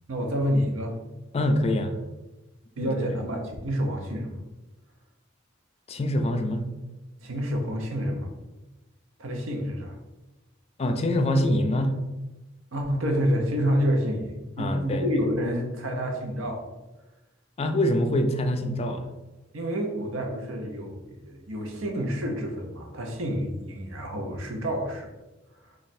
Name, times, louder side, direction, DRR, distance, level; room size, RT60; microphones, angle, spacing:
voice 1, 0.1-1.0 2.8-4.4 7.2-8.3 9.2-10.0 12.7-16.6 19.5-25.1 25.7-25.8, equal, 80° right, 2 dB, 0.7 m, -28 dB
voice 2, 1.3-2.0 2.8-2.9 5.9-6.7 10.8-11.9 14.6-15.1 17.6-19.1, left 1 dB, 30° left, 6 dB, 0.4 m, -25 dB
3.0 x 2.4 x 4.1 m, 1.1 s
head